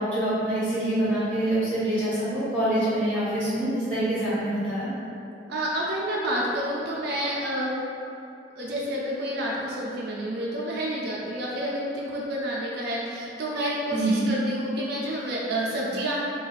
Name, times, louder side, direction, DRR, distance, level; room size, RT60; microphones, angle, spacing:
voice 1, 0.0-4.9 13.9-14.3, right 1 dB, 5° left, -13 dB, 1.2 m, -25 dB
voice 2, 5.5-7.7 8.6-16.3, right 1 dB, 60° right, -5 dB, 0.5 m, -29 dB
2.4 x 2.3 x 4.0 m, 2.6 s
head